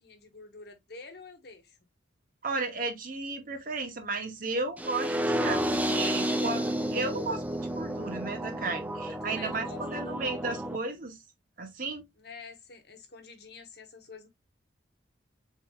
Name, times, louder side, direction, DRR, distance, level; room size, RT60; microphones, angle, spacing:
voice 1, 0.0-1.9 9.1-10.2 12.2-14.3, left 4 dB, 55° left, 1.0 m, -48 dB
voice 2, 2.4-11.2 11.6-12.0, right 3 dB, 45° right, 0.9 m, -34 dB
sound 1, 4.8-10.8, equal, 10° right, 0.4 m, -31 dB
4.2 x 3.7 x 2.2 m
head